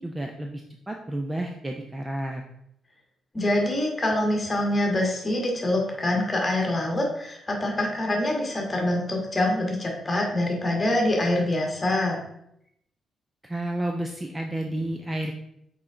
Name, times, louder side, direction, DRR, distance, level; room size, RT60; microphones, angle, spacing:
voice 1, 0.0-2.4 13.4-15.3, right 1 dB, 10° right, 2 dB, 0.4 m, -31 dB
voice 2, 3.3-12.2, left 1 dB, 20° left, 0 dB, 1.4 m, -25 dB
6.1 x 4.4 x 3.8 m, 0.76 s
cardioid pair, 165°, 0 cm